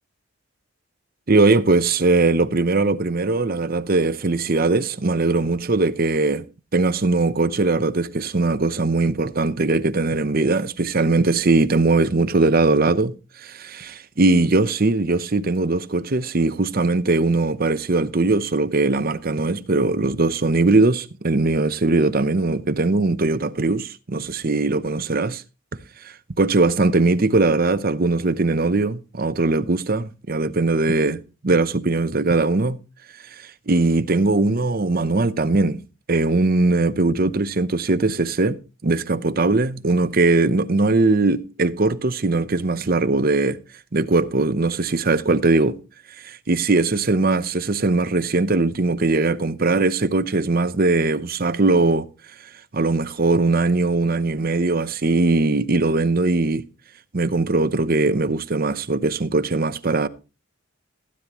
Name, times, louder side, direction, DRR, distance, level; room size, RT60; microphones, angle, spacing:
voice 1, 1.3-6.5 6.7-25.4 26.0-32.8 33.3-35.8 36.1-43.6 43.9-45.8 46.2-52.1 52.7-56.6 57.1-60.1, right 3 dB, 40° right, 0.7 m, -20 dB
16.0 x 9.9 x 3.0 m
head